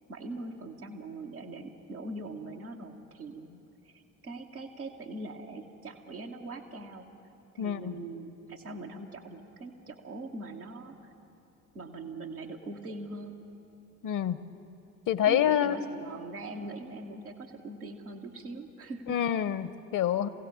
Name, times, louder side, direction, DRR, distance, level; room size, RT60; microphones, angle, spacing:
voice 1, 0.1-3.6 3.8-7.1 7.5-11.1 11.7-13.4 15.3-19.2, right 2 dB, 85° right, -1 dB, 1.2 m, -42 dB
voice 2, 7.6-7.9 14.0-14.4 15.1-15.8 19.1-20.3, left 10 dB, 45° left, 16 dB, 0.9 m, -27 dB
23.0 x 16.0 x 7.2 m, 2.9 s
figure-of-eight pair, 45°, 42 cm